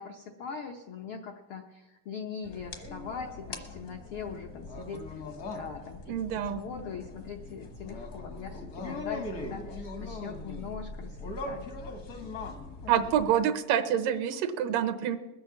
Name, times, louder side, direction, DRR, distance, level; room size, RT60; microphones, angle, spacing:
voice 1, 0.0-5.2 5.5-11.7, left 6 dB, 80° left, 3 dB, 1.2 m, -41 dB
sound 1, 2.4-13.3, left 2 dB, 55° left, 1.0 m, -41 dB
voice 2, 6.1-6.6 12.9-15.2, right 9 dB, 85° right, 9 dB, 2.5 m, -27 dB
21.0 x 7.8 x 7.1 m, 1.2 s
omnidirectional pair, 3.8 m